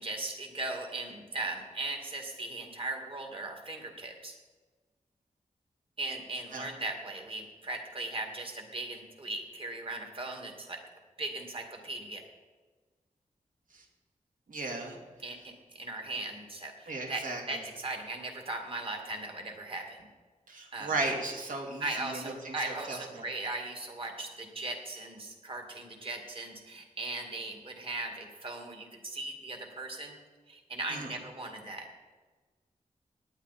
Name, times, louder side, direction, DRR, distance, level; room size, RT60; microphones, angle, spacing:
voice 1, 0.0-4.4 6.0-10.8 11.2-12.2 15.2-20.0 20.7-20.9 21.8-30.2 30.5-31.9, right 2 dB, 40° right, 3 dB, 2.1 m, -38 dB
voice 2, 14.5-15.0 16.9-17.4 20.5-23.2 30.9-31.1, right 2 dB, 75° right, 1 dB, 2.5 m, -36 dB
18.5 x 9.8 x 4.2 m, 1.3 s
wide cardioid pair, 150°, 14 cm